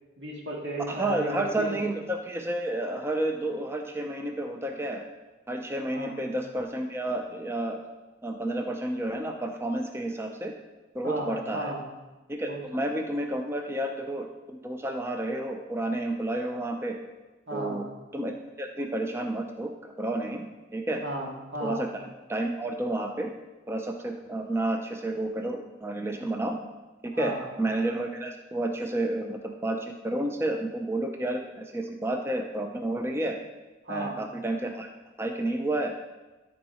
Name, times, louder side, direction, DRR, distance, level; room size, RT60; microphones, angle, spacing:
voice 1, 0.2-1.8 5.9-6.2 11.0-11.8 12.5-12.6 17.5-17.8 21.0-21.8 27.1-27.4 33.8-34.2, right 1 dB, 85° right, -1 dB, 2.1 m, -34 dB
voice 2, 0.9-5.0 5.5-7.8 8.2-10.5 10.9-11.7 12.3-14.3 14.6-17.0 17.5-17.8 18.1-20.4 20.7-21.0 21.6-21.9 22.3-23.3 23.7-26.6 27.0-27.3 27.6-33.4 33.9-34.9 35.2-35.9, right 1 dB, 15° right, 3 dB, 0.5 m, -30 dB
12.5 x 4.7 x 4.2 m, 1.1 s
head